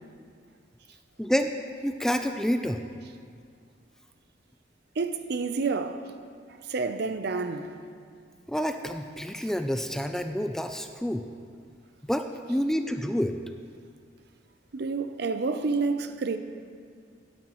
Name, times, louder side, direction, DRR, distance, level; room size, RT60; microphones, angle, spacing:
voice 1, 1.2-1.5 1.8-2.8 8.5-11.2 12.1-13.4, equal, 5° left, 0.3 m, -28 dB
voice 2, 5.0-6.0 6.6-7.7 14.7-16.4, right 4 dB, 60° right, 0.6 m, -29 dB
16.0 x 9.4 x 3.1 m
head